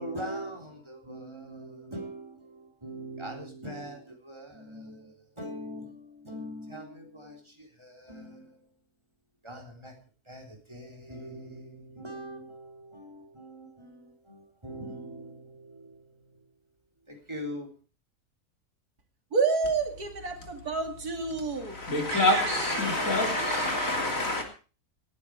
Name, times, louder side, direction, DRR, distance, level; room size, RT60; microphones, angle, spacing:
voice 1, 0.0-8.7 9.4-9.9 10.3-16.4 17.1-17.7, equal, 20° right, 3.8 m, -42 dB
voice 2, 19.3-21.8 22.1-24.0, right 4 dB, 90° right, 3.1 m, -30 dB
voice 3, 21.6-24.4, left 2 dB, 60° left, 3.6 m, -27 dB
18.0 x 11.5 x 4.9 m
omnidirectional pair, 1.6 m